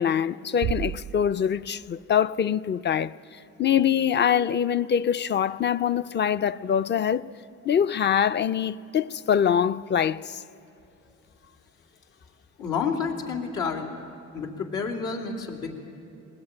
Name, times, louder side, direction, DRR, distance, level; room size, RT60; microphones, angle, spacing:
voice 1, 0.0-3.1 3.6-7.3 7.7-10.4, left 8 dB, 35° left, 0.5 m, -24 dB
sound 1, 0.6-2.5, right 11 dB, 55° right, 0.4 m, -34 dB
voice 2, 12.6-13.9 14.3-15.7, left 5 dB, 85° left, 3.1 m, -29 dB
20.5 x 20.0 x 8.9 m
cardioid pair, 90°, 30 cm